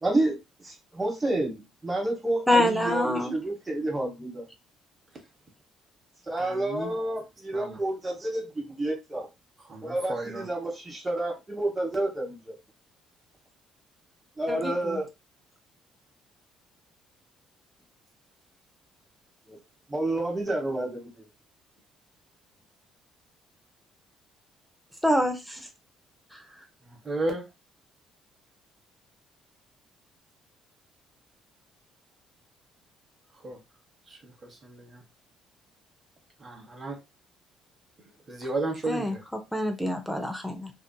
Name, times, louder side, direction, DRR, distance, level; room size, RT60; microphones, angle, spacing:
voice 1, 0.0-0.4 0.6-4.4 6.3-9.3 9.8-12.5 14.4-15.1 19.5-19.6 19.9-21.3, right 1 dB, 20° right, 1.2 m, -29 dB
voice 2, 2.5-3.3 14.5-15.0 25.0-25.6 26.3-26.4 38.9-39.1 39.5-40.7, left 1 dB, ahead, 0.6 m, -26 dB
voice 3, 6.4-7.0 7.5-7.8 9.6-10.5 26.8-27.4 33.4-33.6 34.1-35.0 36.4-37.0 38.3-39.2, right 2 dB, 40° right, 1.1 m, -34 dB
2.7 x 2.4 x 2.2 m
hypercardioid pair, 60°, 0 cm